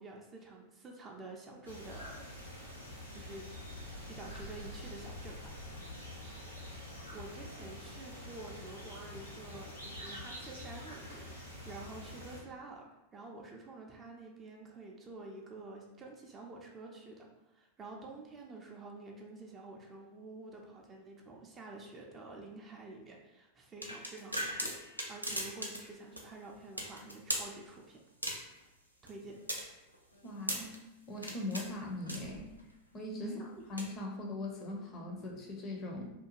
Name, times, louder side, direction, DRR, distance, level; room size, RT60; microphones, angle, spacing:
voice 1, 0.0-2.3 3.1-3.5 4.1-5.5 7.1-11.4 11.6-17.2 17.5-28.0 29.0-29.4 33.2-33.7, right 2 dB, 25° right, 0 dB, 0.4 m, -49 dB
sound 1, 1.6-12.4, left 1 dB, 90° left, 1.0 m, -46 dB
sound 2, 23.8-25.9 26.2-26.3 26.8-27.5 28.2-28.6 29.1-30.8 31.2-31.7 32.1-32.6 33.6-33.8, equal, 90° right, 0.4 m, -38 dB
voice 2, 30.2-30.7 31.1-32.5 32.9-33.3 33.7-36.1, left 2 dB, 30° left, 0 dB, 0.5 m, -40 dB
2.5 x 2.2 x 2.9 m, 0.96 s
figure-of-eight pair, 90°, 0 cm